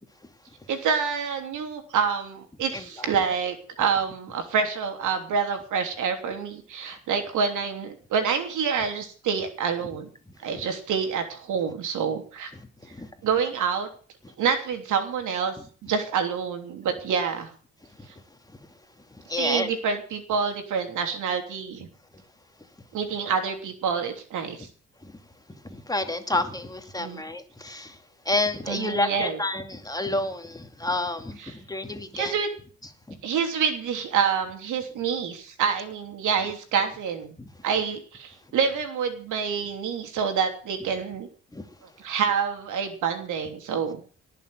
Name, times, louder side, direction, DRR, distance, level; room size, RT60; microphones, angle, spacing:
voice 1, 0.7-10.1 10.4-12.5 13.2-13.9 14.4-15.6 15.8-17.5 19.3-21.9 22.9-24.7 27.0-27.2 28.7-29.4 31.4-31.6 32.1-32.5 33.2-37.3 37.6-41.3 42.0-44.0, right 6 dB, 80° right, 5 dB, 3.3 m, -27 dB
voice 2, 2.7-3.2 13.0-13.1 19.3-19.7 25.0-25.1 25.7-28.0 28.3-31.4 31.7-32.3 33.1-33.2 37.4-37.5 41.5-41.6, left 2 dB, 10° left, 6 dB, 2.5 m, -29 dB
18.5 x 7.1 x 8.1 m, 0.42 s
cardioid pair, 90°, 30 cm